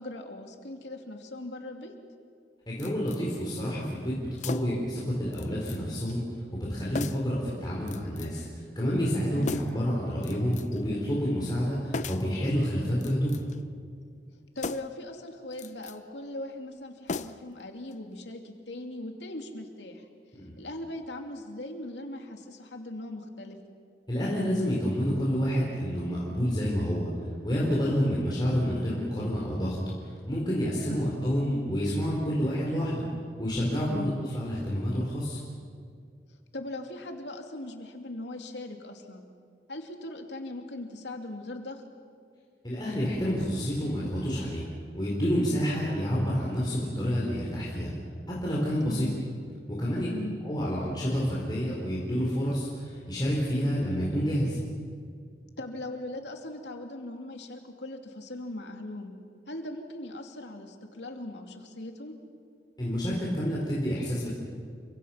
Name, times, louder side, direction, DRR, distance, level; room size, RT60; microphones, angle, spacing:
voice 1, 0.0-1.9 9.4-9.6 14.5-20.0 20.6-23.6 30.9-31.3 33.9-34.2 36.3-39.3 39.7-41.8 48.9-49.2 50.1-50.4 55.6-59.1 59.5-62.1, left 1 dB, 85° left, 4 dB, 2.7 m, -39 dB
voice 2, 2.7-6.2 6.5-13.3 20.3-20.5 24.1-27.1 27.4-29.8 30.3-33.0 33.4-35.4 42.6-44.6 44.9-47.9 48.4-49.1 49.7-50.1 50.4-54.6 62.8-64.3, equal, 25° left, -5 dB, 4.3 m, -28 dB
sound 1, 2.8-3.2 4.4-4.9 5.3-5.8 6.1-6.2 6.9-7.4 7.9-8.4 9.4-9.9 10.2-10.8 11.9-12.3 12.9-13.6 14.6-15.0 15.5-16.0 17.1-17.6 17.9-18.0, left 4 dB, 45° left, 0.7 m, -37 dB
29.5 x 24.5 x 5.8 m, 2.2 s
head